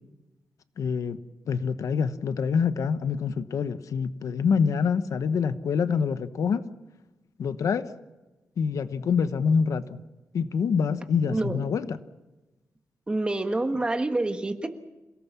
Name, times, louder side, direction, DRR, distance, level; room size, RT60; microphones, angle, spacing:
voice 1, 0.8-1.2 1.5-6.6 7.4-7.9 8.6-10.0 10.3-12.0, left 6 dB, 75° left, 12 dB, 1.1 m, -26 dB
voice 2, 11.3-11.6 13.1-14.7, right 2 dB, 15° right, 7 dB, 1.4 m, -27 dB
27.5 x 18.0 x 7.4 m, 1.1 s
wide cardioid pair, 155°, 6 cm